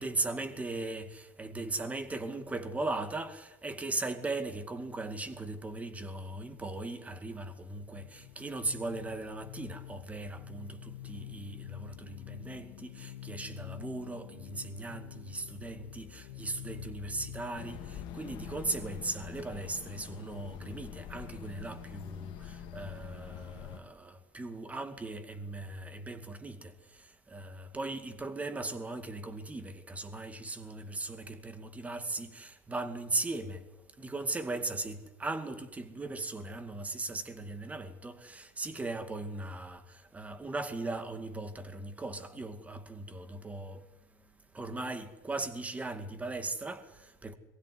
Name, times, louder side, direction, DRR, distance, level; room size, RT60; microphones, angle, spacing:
voice 1, 0.0-33.6 34.0-43.8 44.5-47.3, right 2 dB, 15° right, 2.3 m, -38 dB
sound 1, 7.0-18.1, left 13 dB, 80° left, 1.7 m, -48 dB
sound 2, 17.6-23.8, left 8 dB, 60° left, 2.1 m, -45 dB
23.0 x 16.0 x 9.7 m
supercardioid pair, 115°, 9 cm